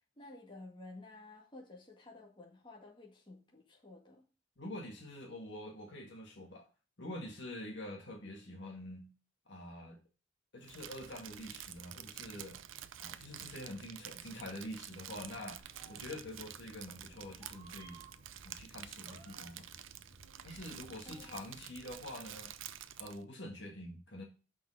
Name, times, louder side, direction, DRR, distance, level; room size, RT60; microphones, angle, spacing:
voice 1, 0.2-4.2 21.0-21.2, left 2 dB, 25° left, -3 dB, 2.0 m, -53 dB
voice 2, 4.6-6.6 7.0-9.1 9.5-10.0 10.5-12.6 13.0-15.6 15.9-18.0 18.4-19.7 20.4-22.5 23.0-24.2, left 1 dB, 60° left, 1 dB, 1.7 m, -46 dB
Crumpling crinkling, 10.6-23.2, right 11 dB, 75° right, 0.5 m, -49 dB
Meow, 15.6-21.9, right 2 dB, 30° right, 2.7 m, -59 dB
6.1 x 5.0 x 6.3 m, 0.35 s
head